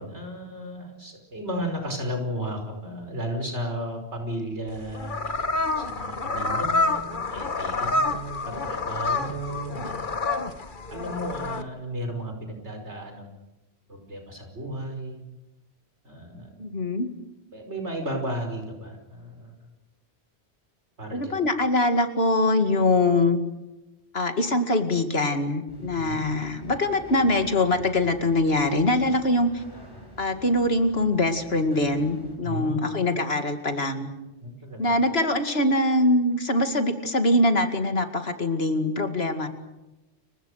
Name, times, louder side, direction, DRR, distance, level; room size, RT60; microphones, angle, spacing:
voice 1, 0.0-5.2 5.8-10.1 10.9-13.3 13.9-15.2 16.0-16.8 17.5-19.5 21.0-21.4 25.9-26.3 32.4-33.1 34.4-35.0, right 1 dB, 85° right, 4 dB, 5.6 m, -34 dB
sound 1, 4.7-11.6, left 3 dB, 50° left, 1.6 m, -28 dB
voice 2, 16.6-17.1 21.1-23.4 24.1-29.6 30.2-34.1 34.8-39.5, left 2 dB, 65° left, 7 dB, 2.5 m, -23 dB
sound 2, 25.7-32.4, right 1 dB, 20° left, 6.9 m, -47 dB
30.0 x 24.5 x 6.6 m, 0.99 s
omnidirectional pair, 1.1 m